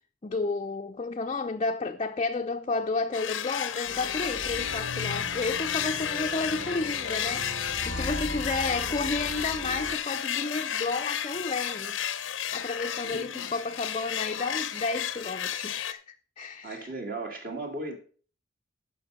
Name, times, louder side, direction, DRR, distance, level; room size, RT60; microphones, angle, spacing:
voice 1, 0.2-12.0 12.5-16.9, left 3 dB, 30° left, 0.5 m, -32 dB
sound 1, 3.1-15.9, left 9 dB, 85° left, 0.7 m, -32 dB
sound 2, 3.9-9.9, equal, 65° right, 2.4 m, -39 dB
voice 2, 13.0-13.5 16.6-18.0, right 2 dB, 50° right, 2.2 m, -36 dB
13.0 x 5.3 x 5.4 m
head